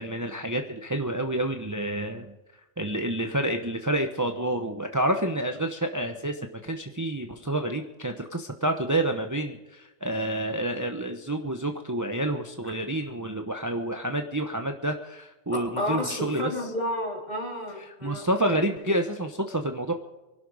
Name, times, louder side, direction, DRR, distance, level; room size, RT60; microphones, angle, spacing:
voice 1, 0.0-2.3 2.8-16.5 18.0-19.9, right 1 dB, 15° right, 5 dB, 1.0 m, -29 dB
voice 2, 15.5-18.3 18.8-18.9, left 1 dB, 35° left, 0 dB, 3.8 m, -31 dB
24.5 x 12.0 x 4.9 m, 1.1 s
omnidirectional pair, 1.2 m